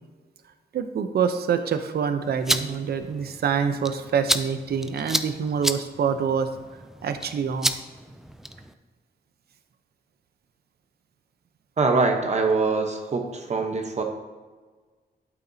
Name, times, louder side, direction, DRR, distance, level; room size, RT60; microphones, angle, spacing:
voice 1, 0.7-6.5 7.0-7.7, right 7 dB, 75° right, 8 dB, 0.7 m, -26 dB
sound 1, 2.2-8.7, equal, ahead, 0.3 m, -31 dB
voice 2, 11.8-14.0, right 4 dB, 45° right, 3 dB, 0.9 m, -23 dB
12.0 x 8.7 x 2.8 m, 1.4 s
wide cardioid pair, 175°, 17 cm